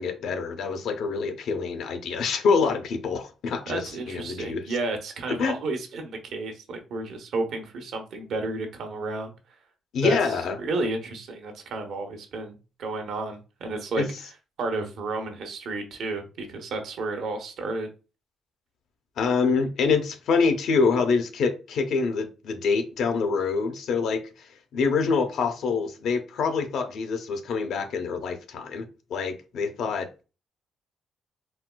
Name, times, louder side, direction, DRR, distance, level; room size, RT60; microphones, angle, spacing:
voice 1, 0.0-3.8 4.1-4.6 5.3-5.6 9.9-10.6 14.0-14.1 19.2-30.2, left 5 dB, 75° left, 0.6 m, -26 dB
voice 2, 3.7-9.3 10.0-14.3 14.6-17.9, right 2 dB, 70° right, 0.8 m, -32 dB
4.1 x 2.1 x 2.2 m
cardioid pair, 90°, 0 cm